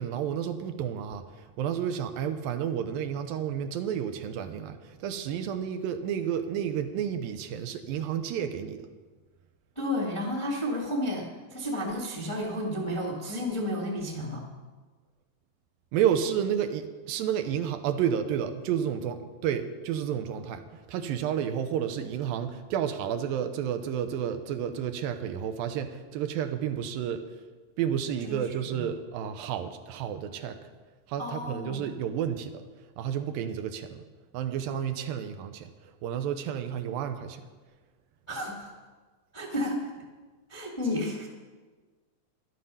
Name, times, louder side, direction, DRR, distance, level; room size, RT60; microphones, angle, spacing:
voice 1, 0.0-8.8 15.9-27.2 27.8-30.6 31.1-32.6 33.0-34.0 34.3-35.7 36.0-37.4, right 9 dB, 85° right, 8 dB, 2.6 m, -31 dB
voice 2, 9.7-14.4 28.3-28.8 31.2-31.9 38.3-38.7 39.3-39.9 40.5-41.3, left 1 dB, 30° left, -3 dB, 0.5 m, -32 dB
12.0 x 11.5 x 5.5 m, 1.4 s
omnidirectional pair, 4.1 m